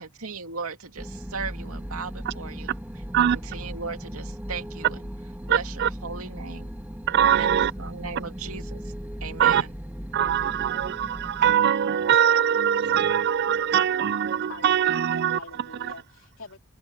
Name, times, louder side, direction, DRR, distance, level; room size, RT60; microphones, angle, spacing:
voice 1, 0.0-2.7 3.1-5.0 5.5-6.7 7.3-8.9 9.2-9.7, right 5 dB, 75° right, 2.4 m, -37 dB
sound 1, 1.0-11.5, equal, 10° right, 1.9 m, -37 dB
voice 2, 7.1-7.7 9.4-9.6 10.1-15.4 15.8-15.9, right 9 dB, 50° right, 0.3 m, -22 dB
voice 3, 14.5-16.6, left 3 dB, 65° left, 3.3 m, -44 dB
head